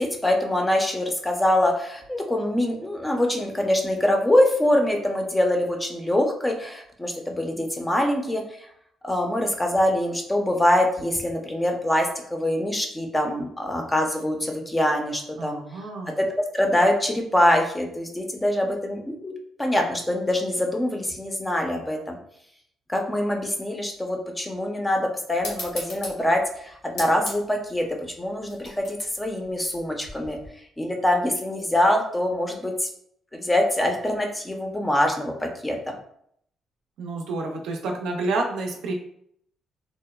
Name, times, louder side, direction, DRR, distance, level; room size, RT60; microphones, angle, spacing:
voice 1, 0.0-8.4 9.0-15.6 16.2-19.3 19.6-22.2 22.9-27.8 28.2-30.4 30.8-32.9 33.3-36.0, left 1 dB, 15° left, 2 dB, 0.5 m, -24 dB
voice 2, 15.4-16.2 37.0-38.9, right 3 dB, 85° right, 2 dB, 0.4 m, -29 dB
sound 1, 25.4-30.5, left 2 dB, 85° left, 1.0 m, -39 dB
2.8 x 2.0 x 2.2 m, 0.68 s
cardioid pair, 90°, 0 cm